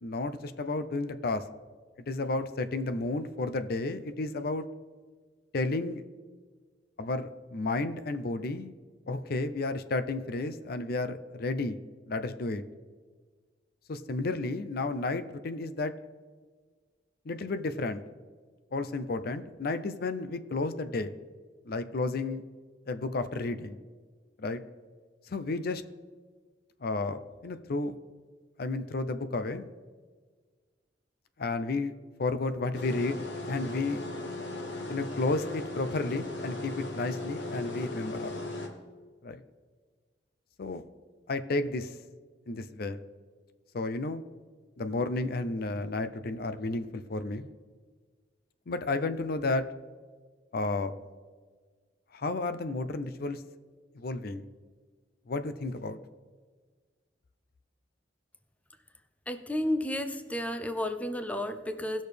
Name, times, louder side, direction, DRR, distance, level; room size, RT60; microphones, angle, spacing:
voice 1, 0.0-1.4 2.1-4.7 5.5-6.0 7.0-8.7 9.1-11.8 12.1-12.6 13.9-15.9 17.3-18.0 18.7-21.1 21.7-22.4 22.9-23.8 24.4-24.6 25.3-25.8 26.8-27.9 28.6-29.7 31.4-31.9 32.2-34.0 34.9-38.3 39.2-39.4 40.6-40.8 41.3-41.9 42.5-43.0 43.7-44.2 44.8-47.5 48.7-49.7 50.5-50.9 52.1-53.4 53.9-54.4 55.3-56.0, left 2 dB, 55° left, 11 dB, 0.5 m, -32 dB
sound 1, 32.7-38.7, left 2 dB, 85° left, 1.5 m, -37 dB
voice 2, 59.3-62.0, left 1 dB, 10° left, 8 dB, 0.5 m, -32 dB
18.0 x 6.3 x 3.4 m, 1.5 s
head